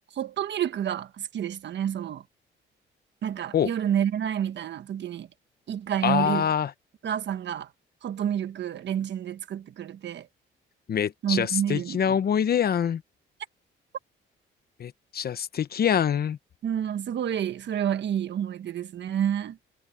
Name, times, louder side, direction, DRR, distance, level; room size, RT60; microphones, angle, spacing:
voice 1, 0.1-2.2 3.2-5.3 5.7-6.5 7.0-7.7 8.0-10.3 11.2-12.2 16.6-19.6, right 9 dB, 65° right, 1.5 m, -29 dB
voice 2, 6.0-6.7 10.9-13.0 14.8-16.4, left 8 dB, 50° left, 1.0 m, -25 dB
cardioid pair, 90°, 20 cm